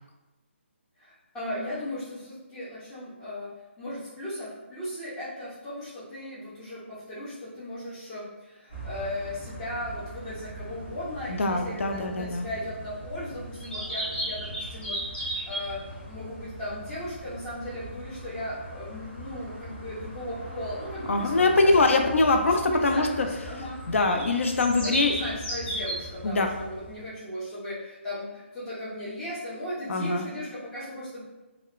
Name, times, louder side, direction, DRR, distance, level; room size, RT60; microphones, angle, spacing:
voice 1, 1.0-3.5 3.8-22.1 22.5-23.8 24.8-31.2, left 1 dB, 10° left, -10 dB, 0.4 m, -37 dB
sound 1, 8.7-27.1, right 1 dB, 50° left, 1.1 m, -38 dB
voice 2, 11.3-12.4 21.1-23.3 23.9-25.2 26.2-26.5 29.9-30.2, left 3 dB, 80° left, 4 dB, 0.4 m, -23 dB
2.8 x 2.0 x 2.3 m, 1.1 s
hypercardioid pair, 170°, 7 cm